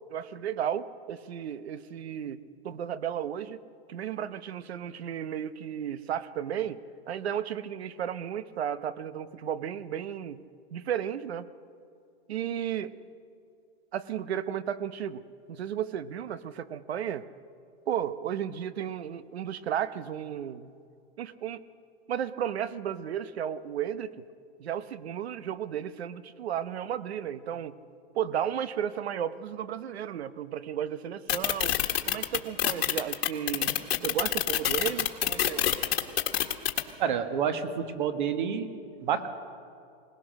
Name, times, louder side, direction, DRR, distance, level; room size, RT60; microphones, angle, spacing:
voice 1, 0.1-3.6 3.9-6.8 7.1-10.4 10.7-11.5 12.3-12.9 13.9-15.2 15.5-17.3 17.9-20.7 21.2-21.6 22.1-24.2 24.6-27.8 28.1-31.7 32.1-35.6, right 9 dB, 90° right, 15 dB, 1.0 m, -34 dB
sound 1, 31.3-36.8, left 11 dB, 80° left, 1.7 m, -26 dB
voice 2, 37.0-38.7 39.0-39.3, right 7 dB, 50° right, 9 dB, 1.5 m, -28 dB
21.5 x 19.5 x 6.5 m, 2.5 s
supercardioid pair, 170°, 31 cm